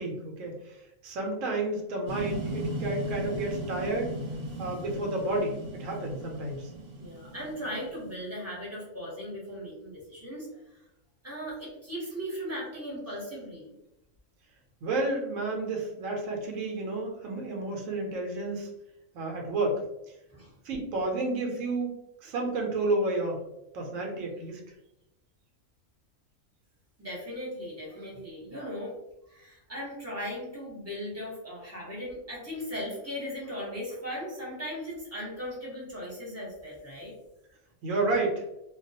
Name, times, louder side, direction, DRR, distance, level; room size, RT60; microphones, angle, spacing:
voice 1, 0.0-4.2 4.6-6.7 14.8-18.7 19.1-19.8 20.6-21.9 22.2-23.4 23.7-24.6 37.8-38.4, right 2 dB, 75° right, 1 dB, 1.0 m, -31 dB
sound 1, 2.1-8.1, right 1 dB, 55° right, 0.5 m, -37 dB
voice 2, 7.0-10.8 11.2-13.7 20.3-20.5 27.0-28.9 29.3-37.1, equal, 15° right, -5 dB, 0.7 m, -38 dB
2.3 x 2.2 x 2.6 m, 0.88 s
omnidirectional pair, 1.4 m